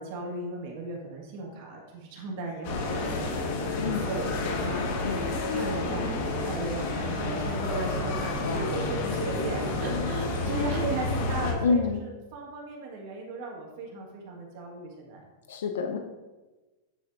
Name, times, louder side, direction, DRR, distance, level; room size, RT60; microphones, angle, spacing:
voice 1, 0.0-4.9 5.2-15.2, right 2 dB, 50° right, -1 dB, 1.5 m, -36 dB
sound 1, 2.6-11.5, left 3 dB, 60° left, 1.4 m, -30 dB
voice 2, 3.8-4.1 4.4-5.3 8.4-8.7 11.6-12.1 15.5-16.0, left 5 dB, 90° left, 5 dB, 0.5 m, -29 dB
9.0 x 4.4 x 2.6 m, 1.2 s
supercardioid pair, 155°, 0 cm